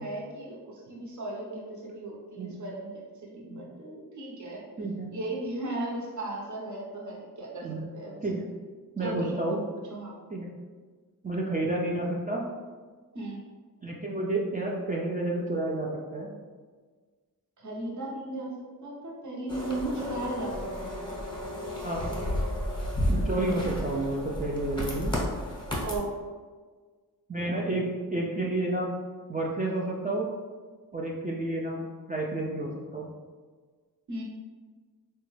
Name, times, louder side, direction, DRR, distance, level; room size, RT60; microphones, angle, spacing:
voice 1, 0.0-4.6 5.1-7.7 7.9-8.2 9.0-9.4 9.9-10.1 13.1-13.4 17.6-21.0 25.8-26.1 34.1-34.2, right 1 dB, 50° right, -4 dB, 0.9 m, -36 dB
voice 2, 4.8-5.1 7.6-7.9 8.2-8.5 9.0-9.6 10.3-10.5 11.2-12.5 13.8-16.3 21.8-22.2 23.1-25.1 27.3-29.0 29.3-30.3 30.9-33.1, right 2 dB, 25° right, -3 dB, 0.3 m, -30 dB
sound 1, 19.5-26.0, equal, 10° left, 0.8 m, -32 dB
3.8 x 2.2 x 3.1 m, 1.5 s
wide cardioid pair, 100°, 38 cm